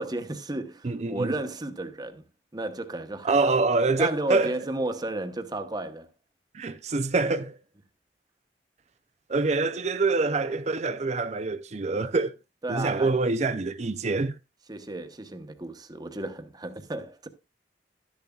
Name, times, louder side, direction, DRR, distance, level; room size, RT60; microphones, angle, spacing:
voice 1, 0.0-2.2 2.5-3.6 4.0-6.1 12.6-13.1 14.7-17.3, right 2 dB, 25° right, 1.0 m, -33 dB
voice 2, 0.8-1.3 3.2-4.5 6.5-7.6 9.3-12.3 12.7-14.3, right 3 dB, 40° right, 0.5 m, -25 dB
12.0 x 10.5 x 2.4 m
head